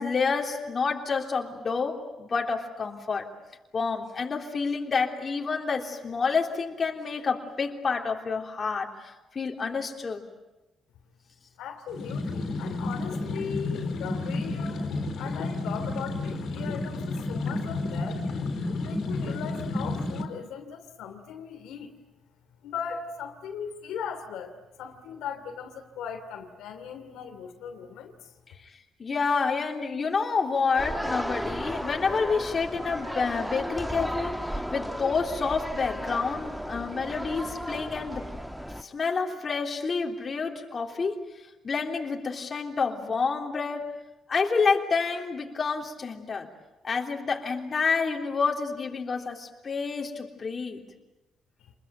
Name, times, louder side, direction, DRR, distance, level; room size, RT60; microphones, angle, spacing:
voice 1, 0.0-3.3 3.7-10.2 28.6-28.7 29.0-38.2 38.8-41.2 41.6-43.9 44.3-46.5 46.8-50.8, left 5 dB, 40° left, 1 dB, 3.4 m, -28 dB
voice 2, 11.6-14.9 15.2-18.2 18.8-21.9 22.6-28.3, left 7 dB, 90° left, 4 dB, 2.8 m, -38 dB
sound 1, 11.9-20.2, left 2 dB, 70° left, 4.0 m, -31 dB
sound 2, 30.8-38.8, equal, ahead, 1.4 m, -34 dB
27.5 x 21.5 x 9.2 m, 1.0 s
cardioid pair, 90°, 0 cm